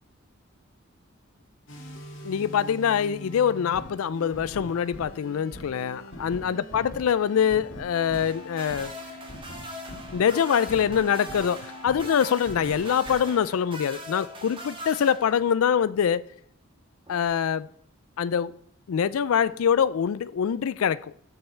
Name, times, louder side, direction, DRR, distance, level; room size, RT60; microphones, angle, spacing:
sound 1, 1.7-13.2, left 1 dB, 60° left, 2.3 m, -42 dB
voice 1, 2.2-8.9 10.1-16.2 17.1-17.7 18.2-18.6 18.9-21.1, left 8 dB, 80° left, 0.4 m, -24 dB
sound 2, 8.1-15.7 17.1-17.2, equal, 25° right, 1.6 m, -41 dB
13.0 x 5.4 x 4.5 m
head